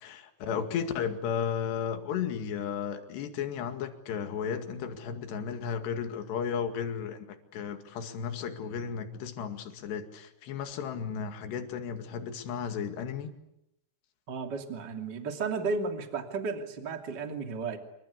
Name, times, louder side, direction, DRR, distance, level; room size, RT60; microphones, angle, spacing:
voice 1, 0.0-7.3 7.5-13.3, left 7 dB, 65° left, 7 dB, 4.1 m, -34 dB
voice 2, 14.3-17.8, right 4 dB, 30° right, 5 dB, 2.3 m, -33 dB
27.5 x 24.0 x 8.5 m, 0.81 s
omnidirectional pair, 5.7 m